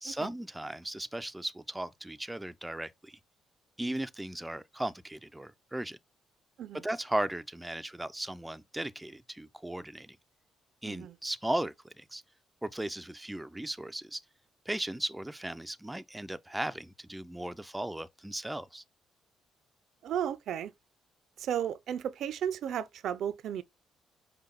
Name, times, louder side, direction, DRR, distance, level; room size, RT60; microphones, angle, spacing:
voice 1, 0.0-3.2 3.8-6.0 6.7-10.2 10.8-12.2 12.6-14.2 14.7-18.8, right 1 dB, 10° right, 0.4 m, -36 dB
voice 2, 20.0-20.7 21.4-23.6, right 9 dB, 75° right, 0.5 m, -34 dB
5.2 x 2.2 x 4.0 m
cardioid pair, 90°, 0 cm